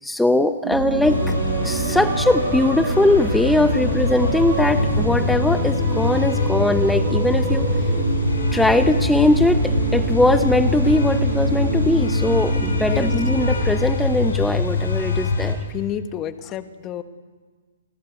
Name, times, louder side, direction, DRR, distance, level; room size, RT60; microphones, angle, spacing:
voice 1, 0.0-1.4 1.6-7.7 8.5-15.6, left 2 dB, 5° left, 10 dB, 0.8 m, -20 dB
sound 1, 0.6-15.3, right 5 dB, 35° right, 6.8 m, -29 dB
Insect, 0.7-13.7, right 5 dB, 85° right, 1.0 m, -31 dB
sound 2, 1.0-15.5, left 3 dB, 85° left, 6.3 m, -23 dB
voice 2, 15.7-17.0, left 10 dB, 25° left, 10 dB, 1.4 m, -29 dB
28.5 x 18.5 x 8.2 m, 1.5 s
hypercardioid pair, 140°, 0 cm